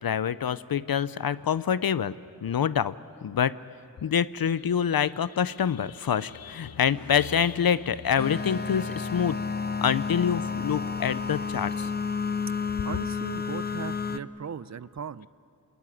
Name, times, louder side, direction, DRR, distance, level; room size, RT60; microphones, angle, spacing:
voice 1, 0.0-2.2 2.4-3.0 3.2-3.6 4.0-9.4 9.8-11.9, left 8 dB, 75° left, 16 dB, 0.6 m, -26 dB
sound 1, 8.2-14.2, left 5 dB, 25° left, 0.8 m, -31 dB
voice 2, 12.8-15.3, right 7 dB, 50° right, 18 dB, 0.5 m, -38 dB
25.0 x 20.5 x 9.9 m, 2.8 s
wide cardioid pair, 70°, 36 cm